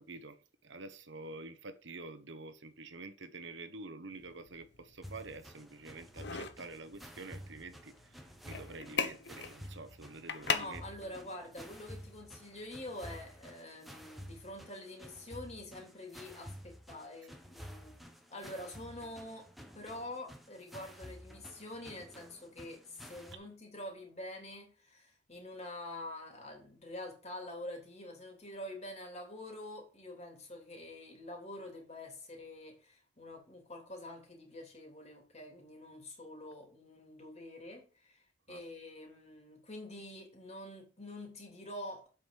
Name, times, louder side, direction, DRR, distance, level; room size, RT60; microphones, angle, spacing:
voice 1, 0.0-10.8 38.5-38.6, right 3 dB, 65° right, 1.1 m, -48 dB
sound 1, 4.1-12.9, left 6 dB, 60° left, 1.1 m, -42 dB
sound 2, 5.0-23.3, equal, ahead, 1.2 m, -51 dB
voice 2, 10.5-19.5 19.7-42.1, left 1 dB, 35° left, 3.2 m, -46 dB
8.1 x 6.2 x 6.9 m
head